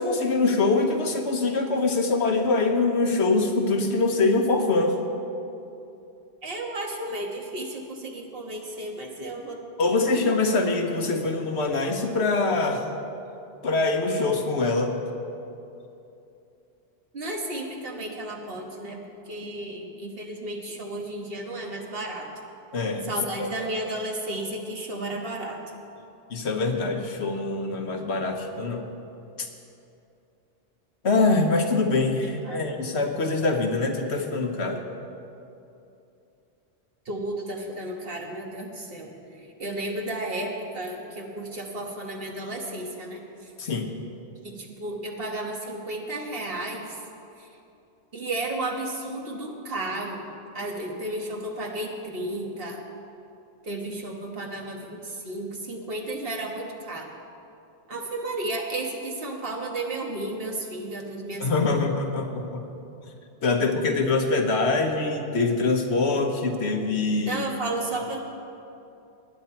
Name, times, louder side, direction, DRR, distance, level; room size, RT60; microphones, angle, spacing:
voice 1, 0.0-5.0 9.8-12.8 13.6-15.0 22.7-23.1 23.4-23.5 26.3-28.9 31.0-34.8 43.6-43.9 61.4-62.6 63.4-67.4, left 3 dB, 75° left, 4 dB, 1.4 m, -24 dB
voice 2, 6.4-10.2 17.1-22.3 23.0-25.6 32.2-32.8 37.0-43.2 44.4-47.0 47.4-47.5 48.1-50.2 50.5-52.8 53.6-57.1 57.9-61.8 67.2-68.2, right 1 dB, 60° right, 1 dB, 1.7 m, -33 dB
20.0 x 9.6 x 4.5 m, 2.8 s
omnidirectional pair, 1.1 m